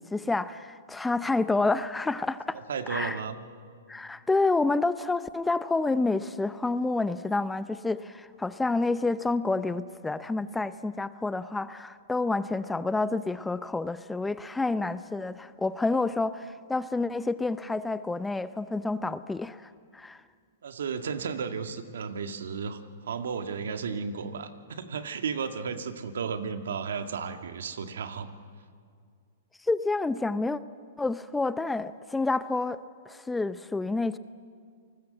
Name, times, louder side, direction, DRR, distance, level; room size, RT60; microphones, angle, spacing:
voice 1, 0.0-2.6 2.9-3.2 3.9-20.2 29.6-30.6 31.0-34.2, left 3 dB, 5° left, 14 dB, 0.6 m, -29 dB
voice 2, 2.5-3.4 20.6-28.3, right 6 dB, 80° right, 8 dB, 1.9 m, -34 dB
28.0 x 19.5 x 7.9 m, 2.2 s
hypercardioid pair, 135°, 0 cm